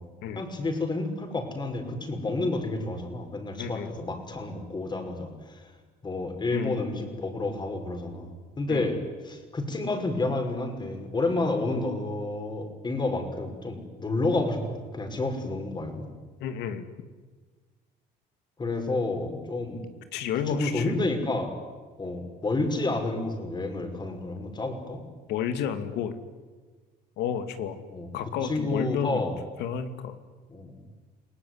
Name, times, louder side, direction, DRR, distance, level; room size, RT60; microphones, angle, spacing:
voice 1, 0.3-5.7 6.0-8.3 8.6-16.1 18.6-19.8 20.5-21.5 22.0-25.0 27.9-28.1 28.4-29.3 30.5-30.7, left 2 dB, 25° left, 5 dB, 5.8 m, -30 dB
voice 2, 3.6-3.9 6.5-6.8 8.7-8.9 16.4-16.9 20.1-21.0 25.3-26.1 27.2-27.8 28.1-29.2 29.6-30.2, left 8 dB, 85° left, 10 dB, 2.6 m, -31 dB
29.5 x 19.0 x 9.7 m, 1.4 s
cardioid pair, 110°, 17 cm